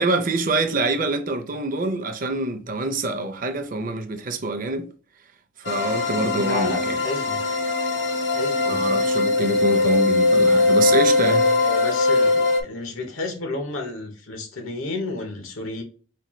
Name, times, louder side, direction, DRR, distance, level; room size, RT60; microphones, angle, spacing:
voice 1, 0.0-4.9 5.7-6.9 8.7-11.7, right 2 dB, 40° right, 0.5 m, -25 dB
sound 1, 5.6-12.6, left 3 dB, 60° left, 0.6 m, -20 dB
voice 2, 6.3-7.4 8.3-9.0 11.6-15.8, left 2 dB, 90° left, 0.8 m, -31 dB
4.3 x 2.2 x 3.0 m
head